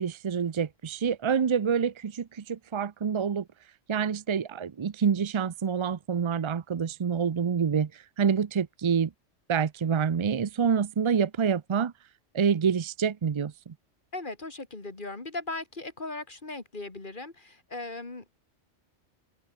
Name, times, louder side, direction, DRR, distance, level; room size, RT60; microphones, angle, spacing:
voice 1, 0.0-3.4 3.9-9.1 9.5-11.9 12.3-13.7, right 7 dB, 50° right, 0.3 m, -27 dB
voice 2, 14.1-18.3, left 2 dB, 45° left, 2.6 m, -38 dB
omnidirectional pair, 1.2 m